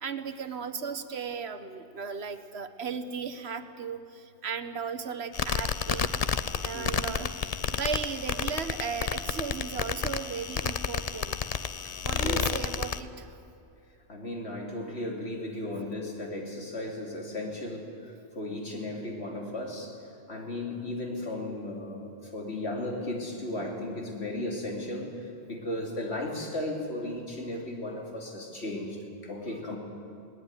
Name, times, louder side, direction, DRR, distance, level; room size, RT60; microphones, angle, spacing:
voice 1, 0.0-4.0 4.4-6.1 6.6-7.3 7.7-11.3 12.0-13.1, right 6 dB, 70° right, 9 dB, 1.4 m, -35 dB
sound 1, 5.3-13.0, left 6 dB, 40° left, 0.7 m, -31 dB
voice 2, 11.8-12.4 14.1-19.9 20.3-29.0 29.2-29.8, left 1 dB, 75° left, 0 dB, 3.4 m, -35 dB
20.5 x 18.5 x 9.7 m, 2.5 s
omnidirectional pair, 1.1 m